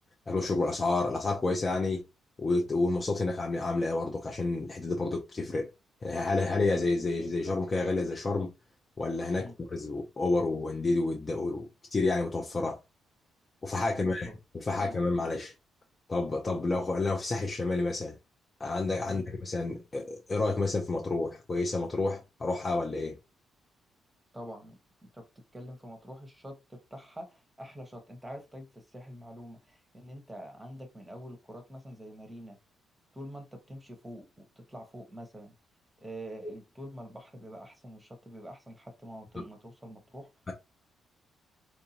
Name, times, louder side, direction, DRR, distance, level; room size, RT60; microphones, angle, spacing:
voice 1, 0.3-2.0 2.4-5.7 6.0-8.5 9.0-12.8 13.6-14.3 14.5-15.5 16.1-18.1 18.6-23.2 39.4-39.5, left 3 dB, 25° left, 0.6 m, -30 dB
voice 2, 14.0-14.4 14.8-15.0 19.0-19.3 24.3-24.8 25.1-25.3 25.5-32.6 33.1-35.5 36.0-40.3, equal, 10° right, 1.0 m, -45 dB
4.5 x 2.7 x 2.8 m
cardioid pair, 145°, 0 cm